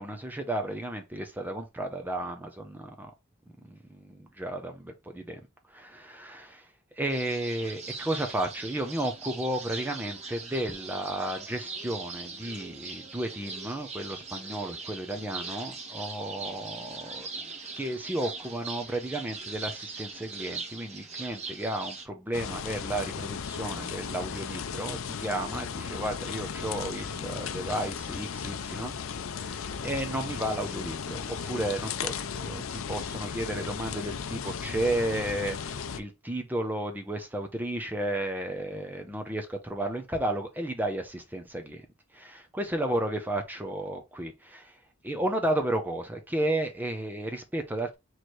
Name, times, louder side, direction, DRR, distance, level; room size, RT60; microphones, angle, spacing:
voice 1, 0.0-3.1 3.6-5.4 5.7-17.3 17.8-41.9 42.1-48.0, right 1 dB, 10° right, 0.6 m, -33 dB
sound 1, 7.1-22.1, right 4 dB, 35° right, 1.0 m, -40 dB
sound 2, 22.3-36.0, left 6 dB, 80° left, 0.5 m, -36 dB
3.1 x 3.1 x 4.2 m
head